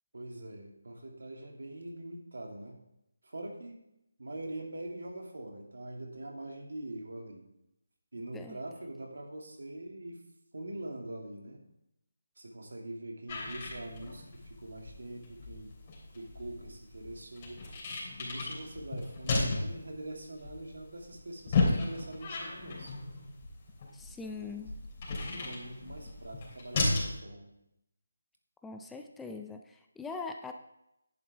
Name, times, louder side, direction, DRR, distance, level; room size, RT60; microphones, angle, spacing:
voice 1, 0.1-2.8 3.2-3.8 4.2-7.4 8.1-10.2 10.5-11.6 12.4-15.7 16.1-17.6 18.2-23.0 24.1-24.7 25.3-27.5, right 1 dB, 70° right, 1 dB, 2.3 m, -43 dB
sound 1, 13.3-27.2, left 3 dB, 30° left, 3.2 m, -35 dB
voice 2, 23.9-24.7 28.6-30.5, left 4 dB, 5° left, 4 dB, 0.4 m, -42 dB
10.5 x 8.6 x 3.4 m, 0.84 s
figure-of-eight pair, 160°, 0 cm